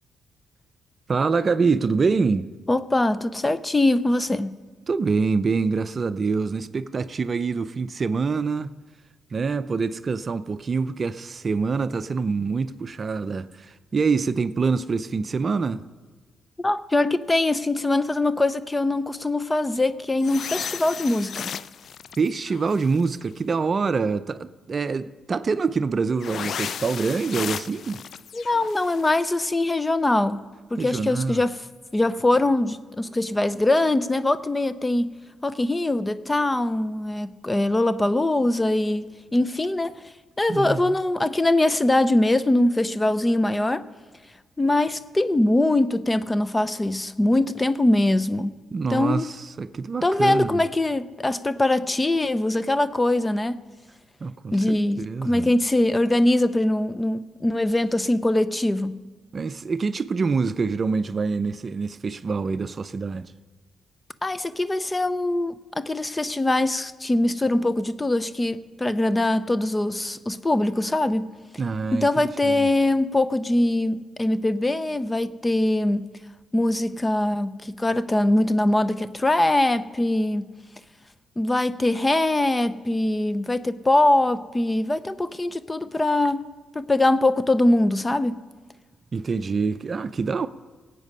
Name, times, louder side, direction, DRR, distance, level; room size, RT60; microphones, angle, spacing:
voice 1, 1.1-2.5 4.9-8.7 9.3-15.8 22.2-28.0 30.8-31.4 40.5-41.0 48.7-50.6 54.2-55.5 59.3-63.3 71.6-72.7 89.1-90.5, right 4 dB, 45° right, 0.5 m, -25 dB
voice 2, 2.7-4.6 16.6-21.5 28.3-30.4 30.7-31.6 31.9-35.1 35.4-39.9 40.4-43.9 44.6-48.6 48.9-49.3 50.0-53.6 54.5-59.0 64.2-71.3 71.9-76.1 76.5-80.5 81.4-86.4 86.7-88.4, left 1 dB, 20° left, 0.6 m, -22 dB
sound 1, 20.2-23.3 26.2-29.3, left 7 dB, 65° left, 0.3 m, -35 dB
18.0 x 8.3 x 5.5 m
supercardioid pair, 65°, 0 cm